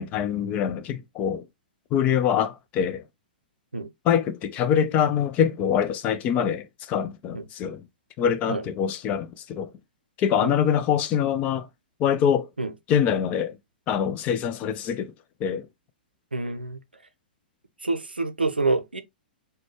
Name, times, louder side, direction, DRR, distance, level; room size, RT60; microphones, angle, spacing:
voice 1, 0.0-1.4 1.9-3.0 4.0-7.8 8.2-9.7 10.2-11.7 12.0-12.5 12.9-13.6 13.9-15.1 15.4-15.7, left 8 dB, 25° left, 0.4 m, -24 dB
voice 2, 16.3-16.8 17.8-19.0, right 3 dB, 80° right, 0.5 m, -27 dB
3.9 x 2.2 x 3.1 m
figure-of-eight pair, 110°, 5 cm